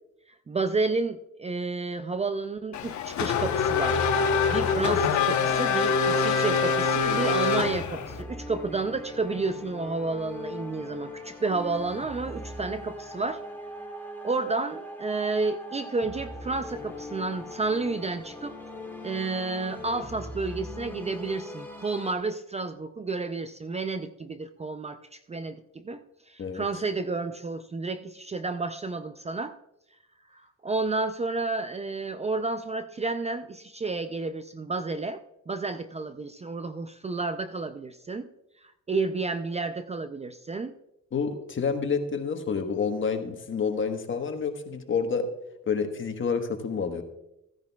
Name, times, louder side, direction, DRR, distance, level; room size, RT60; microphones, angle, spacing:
voice 1, 0.3-4.1 4.5-13.4 14.2-18.6 19.0-29.5 30.3-38.3 38.6-40.8, right 3 dB, 20° right, 10 dB, 0.4 m, -31 dB
Race car auto racing / Accelerating revving vroom, 2.7-8.2, left 5 dB, 70° left, 1.0 m, -24 dB
sound 1, 5.8-22.1, left 1 dB, 5° left, 1.9 m, -41 dB
voice 2, 41.1-45.3 45.7-47.0, left 5 dB, 40° left, 6 dB, 1.3 m, -28 dB
15.5 x 10.5 x 2.3 m, 0.86 s
cardioid pair, 90°, 30 cm